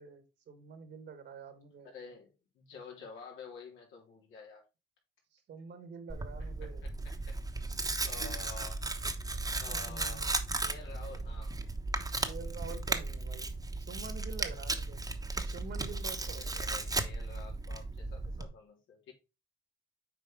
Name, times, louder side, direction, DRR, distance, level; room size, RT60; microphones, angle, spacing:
voice 1, 0.0-1.9 5.3-6.9 8.2-8.3 9.7-10.3 12.2-13.5 13.8-15.0 15.4-16.7, right 5 dB, 65° right, 1.8 m, -47 dB
voice 2, 1.8-4.6 6.4-6.5 8.0-8.8 9.6-11.6 16.2-19.1, left 4 dB, 85° left, 3.4 m, -50 dB
Tearing, 6.1-18.5, right 2 dB, 20° right, 1.1 m, -36 dB
7.8 x 4.6 x 3.8 m
cardioid pair, 90°, 20 cm